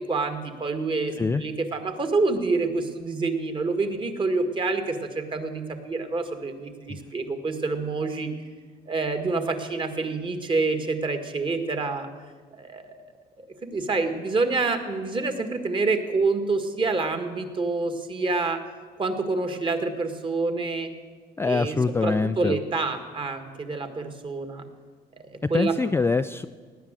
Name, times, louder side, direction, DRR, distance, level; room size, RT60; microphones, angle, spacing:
voice 1, 0.1-8.3 8.9-12.1 12.5-13.0 13.4-18.6 19.0-20.9 21.4-24.6 25.2-25.8, right 3 dB, 30° right, 7 dB, 1.8 m, -27 dB
voice 2, 21.4-22.6 25.4-26.5, left 4 dB, 15° left, 10 dB, 0.3 m, -24 dB
17.0 x 10.0 x 7.6 m, 1.5 s
cardioid pair, 110°, 17 cm